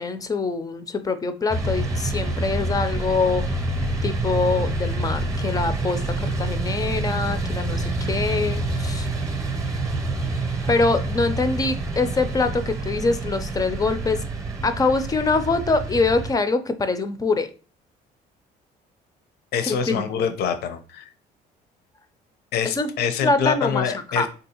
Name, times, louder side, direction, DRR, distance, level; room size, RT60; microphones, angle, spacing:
voice 1, 0.0-3.4 4.0-9.1 10.7-14.2 14.6-17.5 19.6-20.3 22.8-22.9 23.2-23.8 24.2-24.3, left 3 dB, 20° left, 9 dB, 0.4 m, -24 dB
sound 1, 1.5-16.3, right 2 dB, 20° right, 0.7 m, -27 dB
voice 2, 19.5-21.1 22.5-24.3, left 7 dB, 70° left, 9 dB, 0.6 m, -25 dB
3.7 x 2.7 x 2.8 m, 0.37 s
cardioid pair, 110°, 17 cm